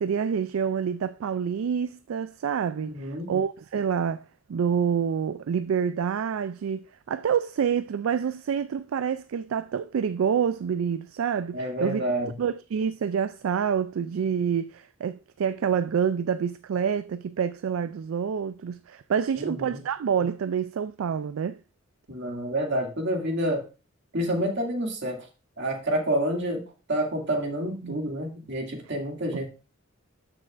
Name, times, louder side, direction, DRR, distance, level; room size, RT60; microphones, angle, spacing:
voice 1, 0.0-4.2 4.5-21.6 27.8-28.1 29.3-29.5, right 7 dB, 75° right, 0.3 m, -27 dB
voice 2, 2.9-3.3 11.5-12.3 19.4-19.8 22.1-23.6 24.1-25.2 25.6-26.6 26.9-29.5, right 1 dB, 60° right, 2.4 m, -28 dB
12.5 x 6.2 x 2.5 m
head